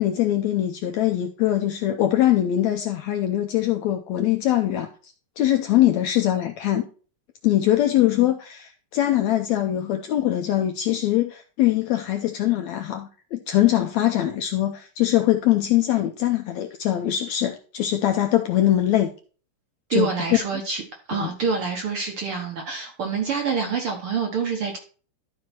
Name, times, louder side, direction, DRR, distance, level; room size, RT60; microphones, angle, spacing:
voice 1, 0.0-4.9 5.4-6.8 7.4-19.1 19.9-20.4 21.1-21.3, left 13 dB, 80° left, 1.6 m, -22 dB
voice 2, 19.9-20.8 21.1-24.8, right 5 dB, 60° right, 1.5 m, -26 dB
12.5 x 4.6 x 4.3 m
omnidirectional pair, 3.9 m